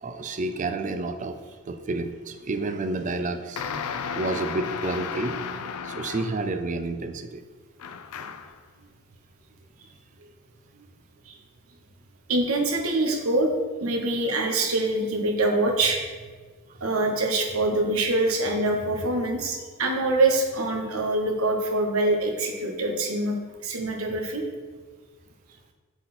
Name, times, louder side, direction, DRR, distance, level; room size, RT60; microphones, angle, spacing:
voice 1, 0.0-1.4 1.7-5.4 5.8-7.4, right 2 dB, 35° right, 8 dB, 0.4 m, -30 dB
sound 1, 3.6-6.6 7.8-8.6, left 6 dB, 85° left, 0.4 m, -34 dB
voice 2, 12.3-13.5 13.8-16.0 16.8-23.4 23.6-24.4, right 2 dB, 80° right, 3 dB, 1.1 m, -24 dB
7.9 x 4.1 x 4.3 m, 1.4 s
head